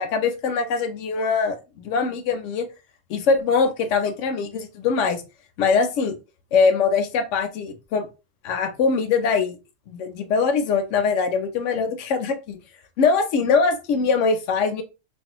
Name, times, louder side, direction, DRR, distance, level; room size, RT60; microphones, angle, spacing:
voice 1, 0.0-2.7 3.1-5.2 5.6-6.1 6.5-8.1 8.4-9.6 9.9-12.6 13.0-14.8, left 5 dB, 80° left, 7 dB, 1.0 m, -22 dB
3.2 x 2.4 x 2.9 m, 0.29 s
omnidirectional pair, 1.3 m